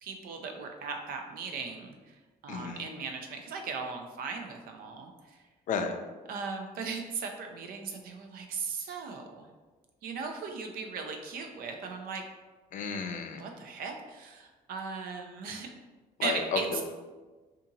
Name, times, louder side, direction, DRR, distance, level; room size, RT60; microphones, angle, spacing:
voice 1, 0.0-5.4 6.3-9.5 10.0-12.2 13.3-15.7 16.2-16.8, right 5 dB, 65° right, 3 dB, 0.5 m, -38 dB
voice 2, 2.5-2.8 5.7-5.9 12.7-13.4 16.2-16.8, left 5 dB, 55° left, 5 dB, 0.4 m, -32 dB
2.7 x 2.5 x 2.6 m, 1.3 s
supercardioid pair, 80°, 16 cm